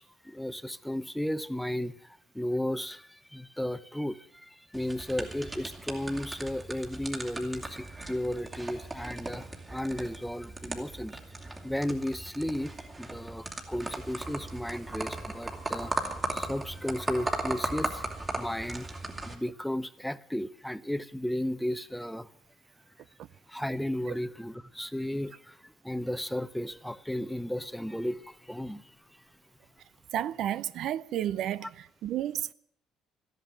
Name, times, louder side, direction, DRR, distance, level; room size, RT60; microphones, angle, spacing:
voice 1, 0.0-11.2 11.6-22.3 23.5-28.8, left 1 dB, ahead, 0.7 m, -34 dB
sound 1, 4.7-19.3, right 2 dB, 25° right, 2.9 m, -37 dB
voice 2, 30.1-32.5, right 11 dB, 70° right, 0.5 m, -32 dB
13.5 x 10.5 x 9.0 m
cardioid pair, 90°, 0 cm